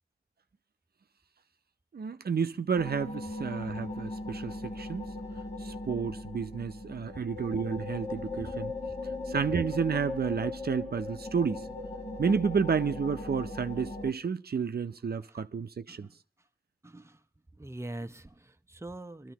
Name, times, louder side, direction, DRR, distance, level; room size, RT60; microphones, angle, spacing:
voice 1, 1.9-5.1 5.6-8.7 9.3-11.7 12.2-16.1, right 6 dB, 85° right, 0.5 m, -31 dB
sound 1, 2.7-14.1, left 2 dB, 45° left, 1.4 m, -38 dB
voice 2, 16.8-17.2 17.6-19.3, right 1 dB, 15° right, 0.7 m, -43 dB
25.0 x 13.0 x 2.9 m
wide cardioid pair, 60°, 16 cm